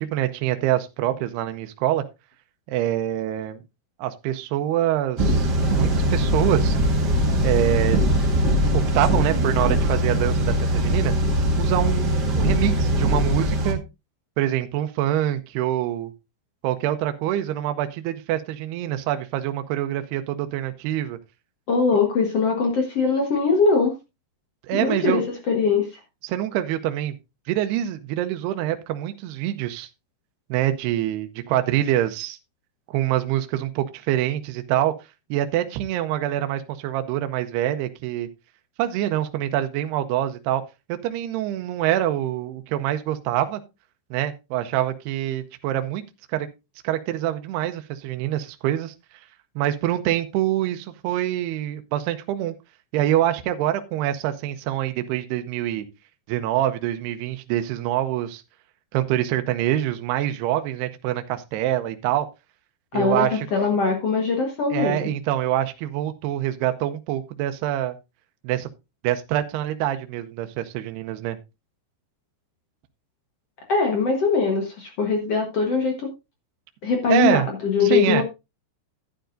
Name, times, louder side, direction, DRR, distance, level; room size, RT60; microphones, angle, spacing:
voice 1, 0.0-2.0 2.7-3.6 4.0-6.8 7.4-8.0 8.7-11.1 11.6-13.8 14.4-16.1 16.6-21.2 24.6-25.2 26.2-27.2 27.5-29.9 30.5-32.4 32.9-34.9 35.3-38.3 38.8-40.6 41.0-43.6 44.1-46.0 46.3-46.5 46.8-48.9 49.6-52.5 52.9-55.9 56.3-58.4 58.9-62.3 62.9-63.5 64.7-68.0 68.4-68.7 69.0-71.4 77.1-77.5 77.8-78.2, right 12 dB, 80° right, 8 dB, 2.7 m, -25 dB
sound 1, 5.2-13.7, equal, 40° right, 1.4 m, -21 dB
voice 2, 21.7-23.9 24.7-25.9 62.9-63.2 63.5-65.0 73.7-76.1 76.8-78.2, left 4 dB, 65° left, 2 dB, 1.5 m, -21 dB
11.5 x 10.5 x 2.6 m, 0.25 s
omnidirectional pair, 4.9 m